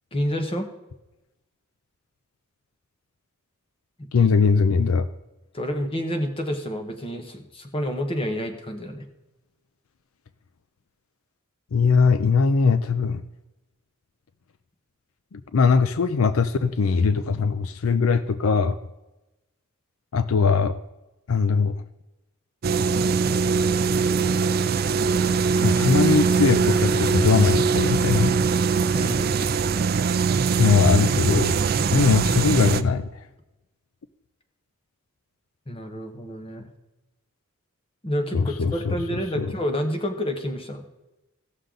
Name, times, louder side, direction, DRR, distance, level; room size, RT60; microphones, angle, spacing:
voice 1, 0.1-0.7 4.0-4.3 5.5-9.0 28.9-29.3 35.7-36.7 38.0-40.8, equal, 25° left, 5 dB, 1.2 m, -29 dB
voice 2, 4.1-5.1 11.7-13.2 15.3-18.8 20.1-20.8 21.3-21.8 25.6-28.4 30.6-31.6 31.9-33.1 38.3-39.0 39.4-39.5, left 5 dB, 75° left, 12 dB, 0.5 m, -20 dB
sound 1, 22.6-32.8, right 5 dB, 45° right, 0.4 m, -22 dB
16.0 x 6.6 x 3.8 m, 1.0 s
head